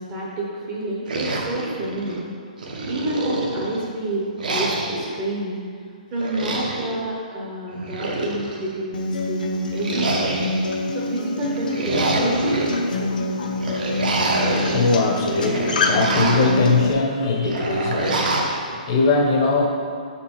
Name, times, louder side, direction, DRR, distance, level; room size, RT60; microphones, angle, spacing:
voice 1, 0.0-2.2 2.9-10.5 10.9-13.1, right 1 dB, 20° right, -4 dB, 0.6 m, -29 dB
sound 1, 1.1-2.2 2.6-3.8 4.4-5.1 6.2-6.9 7.7-8.7 9.8-10.8 11.5-12.7 13.6-14.8 15.2-16.6 17.5-18.6, right 2 dB, 80° right, 1.0 m, -26 dB
Acoustic guitar, 8.9-16.9, left 2 dB, 80° left, 0.7 m, -25 dB
voice 2, 13.4-19.7, left 3 dB, 30° left, 1 dB, 0.6 m, -22 dB
5.9 x 4.4 x 4.4 m, 2.2 s
hypercardioid pair, 180°, 5 cm